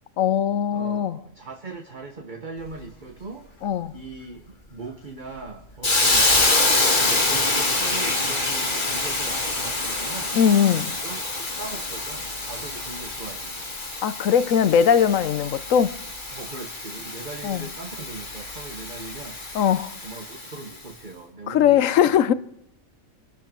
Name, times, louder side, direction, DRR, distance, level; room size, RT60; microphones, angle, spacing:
voice 1, 0.2-1.2 3.6-3.9 10.3-11.0 14.0-15.9 17.4-17.7 19.5-19.9 21.5-22.3, left 8 dB, 70° left, 1.1 m, -20 dB
voice 2, 0.7-3.5 3.9-6.6 7.0-10.4 11.0-13.7 16.3-19.4 20.0-22.3, right 3 dB, 35° right, 1.5 m, -39 dB
Hiss, 5.8-20.6, left 2 dB, 35° left, 2.2 m, -26 dB
24.5 x 12.5 x 4.5 m
omnidirectional pair, 1.4 m